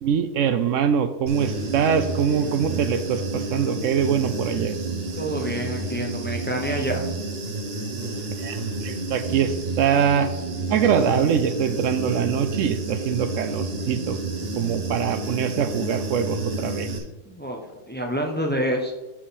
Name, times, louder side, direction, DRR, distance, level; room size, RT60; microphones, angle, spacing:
voice 1, 0.0-4.7 8.4-10.3 10.7-14.2 14.6-16.9, right 7 dB, 75° right, 11 dB, 1.0 m, -23 dB
Human voice / Buzz, 1.3-17.0, right 2 dB, 50° right, 1.3 m, -30 dB
voice 2, 5.2-7.1 17.2-18.9, equal, 10° left, 1 dB, 0.8 m, -28 dB
12.0 x 4.1 x 4.2 m, 1.1 s
omnidirectional pair, 1.3 m